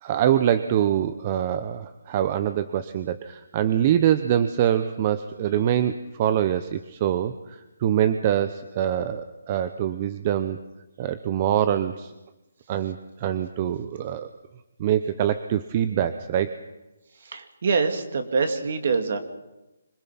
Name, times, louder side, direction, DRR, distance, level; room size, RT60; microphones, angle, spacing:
voice 1, 0.0-10.6 11.0-12.1 12.7-14.3 14.8-16.6, right 10 dB, 30° right, 11 dB, 0.8 m, -24 dB
voice 2, 17.2-19.2, right 4 dB, 55° right, 6 dB, 2.6 m, -25 dB
25.5 x 19.5 x 6.0 m, 1.0 s
hypercardioid pair, 160°, 0 cm